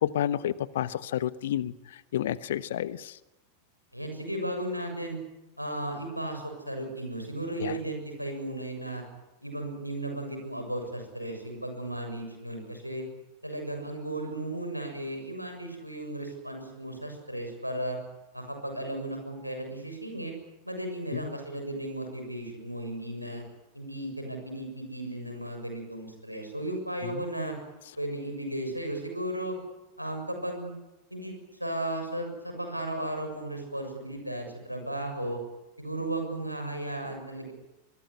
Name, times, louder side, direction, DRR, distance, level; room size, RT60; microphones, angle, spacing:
voice 1, 0.0-1.7 2.1-3.2 7.6-7.8 21.2-21.4, left 11 dB, 60° left, 17 dB, 1.1 m, -30 dB
voice 2, 3.9-5.2 5.6-9.0 9.4-13.0 13.4-18.0 18.3-20.3 20.6-23.4 23.7-27.6 28.0-29.6 30.0-30.7 31.1-35.4 35.8-37.5, right 1 dB, 90° right, 4 dB, 7.0 m, -35 dB
24.0 x 21.5 x 9.8 m, 0.99 s
figure-of-eight pair, 90°, 0 cm